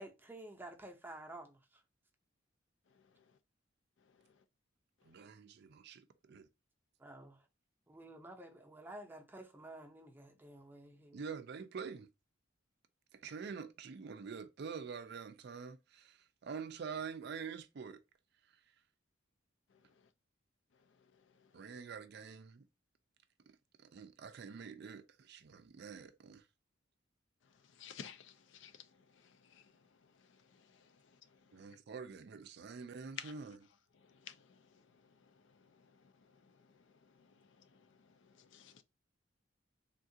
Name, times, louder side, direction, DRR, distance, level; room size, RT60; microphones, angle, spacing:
voice 1, 0.0-1.8 7.0-7.4 7.9-11.3, right 1 dB, 10° right, 0.6 m, -51 dB
voice 2, 5.1-6.5 11.1-12.1 13.1-18.0 21.5-22.6 23.8-26.4 31.5-33.6, right 6 dB, 55° right, 0.4 m, -46 dB
voice 3, 27.8-28.3 28.6-28.7 33.2-33.3 34.3-34.4 38.5-38.8, left 8 dB, 65° left, 0.4 m, -47 dB
3.6 x 2.4 x 2.6 m
head